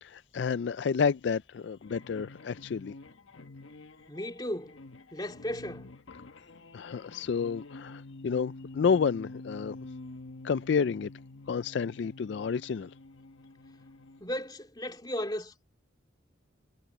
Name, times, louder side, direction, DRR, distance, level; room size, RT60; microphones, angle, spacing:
voice 1, 0.0-2.9 6.7-9.8 10.4-11.1 11.5-12.9, left 6 dB, 65° left, 0.3 m, -30 dB
sound 1, 1.7-14.2, left 2 dB, 85° left, 1.3 m, -48 dB
voice 2, 4.1-4.8 5.1-5.9 14.2-15.7, left 1 dB, 20° left, 2.6 m, -35 dB
head